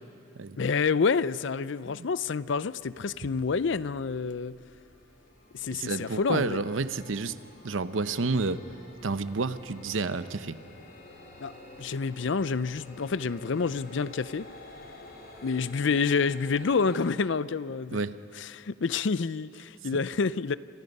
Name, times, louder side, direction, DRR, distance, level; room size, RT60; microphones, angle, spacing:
voice 1, 0.6-4.5 5.5-6.6 11.4-11.5 11.8-14.5 15.4-18.0 18.4-20.6, left 5 dB, 65° left, 17 dB, 0.5 m, -28 dB
sound 1, 2.6-17.0, left 1 dB, 50° left, 4.3 m, -50 dB
voice 2, 5.7-7.4 7.6-8.6 9.0-10.6 17.9-18.2, right 3 dB, 75° right, 13 dB, 0.8 m, -30 dB
29.5 x 26.0 x 5.4 m, 2.5 s
head